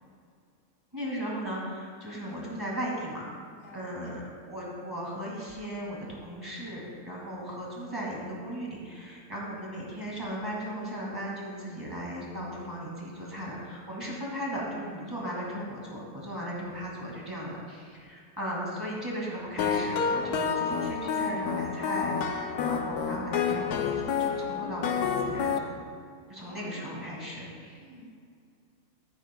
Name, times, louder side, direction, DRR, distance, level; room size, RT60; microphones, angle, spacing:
voice 1, 0.9-3.3 3.7-25.7 26.3-27.8, equal, 15° right, -5 dB, 2.1 m, -37 dB
voice 2, 2.1-2.8 3.6-4.2 26.4-27.3 27.8-28.1, equal, 60° left, -2 dB, 2.1 m, -48 dB
smooth piano and bitcrushed piano loop, 19.6-25.6, left 6 dB, 80° left, 1.1 m, -29 dB
15.0 x 10.0 x 2.3 m, 2.2 s
omnidirectional pair, 1.6 m